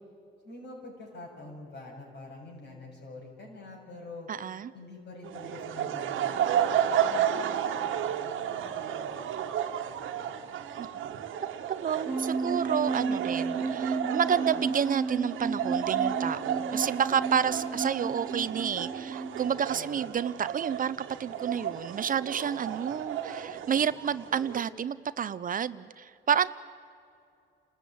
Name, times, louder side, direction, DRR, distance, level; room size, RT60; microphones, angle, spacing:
voice 1, 0.4-4.3 4.7-10.4 19.7-20.1, left 2 dB, 60° left, 0 dB, 7.1 m, -47 dB
voice 2, 4.3-4.7 10.8-10.9 11.7-26.5, right 8 dB, 45° right, 16 dB, 0.6 m, -30 dB
sound 1, 5.2-24.6, right 9 dB, 80° right, 1.5 m, -33 dB
sound 2, 12.1-19.5, right 4 dB, 5° right, 2.1 m, -33 dB
28.5 x 13.5 x 9.4 m, 2.5 s
cardioid pair, 90°, 20 cm